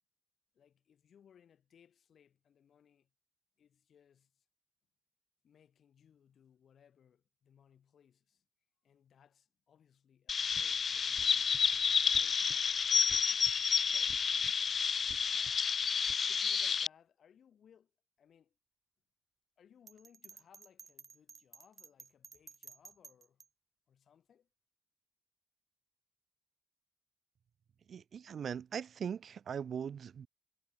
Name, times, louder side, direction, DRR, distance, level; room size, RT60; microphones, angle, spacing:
voice 1, 0.5-3.1 3.6-4.5 5.4-8.4 8.8-12.7 13.8-14.4 15.2-15.7 16.1-18.6 19.6-23.4 23.9-24.5, left 8 dB, 75° left, 6.4 m, -66 dB
Chirp tweet, 10.3-16.9, left 6 dB, 55° left, 0.3 m, -30 dB
sound 1, 10.5-16.1, right 9 dB, 85° right, 4.5 m, -58 dB
Bell, 19.9-23.5, right 6 dB, 50° right, 3.2 m, -54 dB
voice 2, 27.9-30.3, right 7 dB, 65° right, 1.2 m, -40 dB
wide cardioid pair, 135°, 0 cm